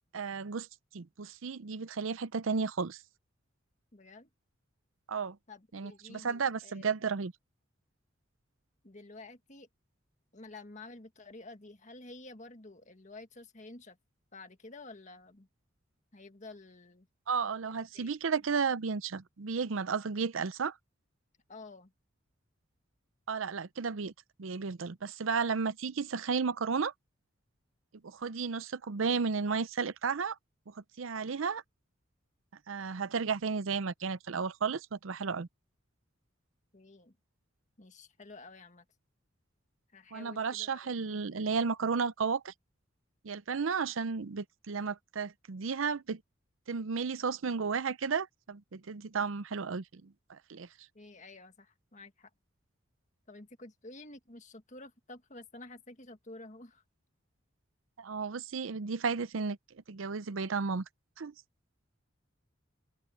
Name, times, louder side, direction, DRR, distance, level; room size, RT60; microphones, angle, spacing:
voice 1, 0.1-0.7 0.9-3.0 5.1-5.4 5.7-7.3 17.3-20.7 23.3-24.1 24.4-26.9 28.0-30.4 30.8-31.6 32.7-35.5 40.1-42.5 43.2-46.2 46.7-50.7 58.0-59.6 59.9-60.8 61.2-61.3, right 5 dB, 90° right, 0.6 m, -33 dB
voice 2, 3.9-4.3 5.5-6.8 8.8-9.7 10.3-14.0 14.3-15.5 16.1-17.1 17.7-18.4 21.5-21.9 36.7-37.2 37.8-38.9 39.9-41.4 50.9-52.3 53.3-56.8, left 2 dB, 40° left, 1.8 m, -51 dB
open air
head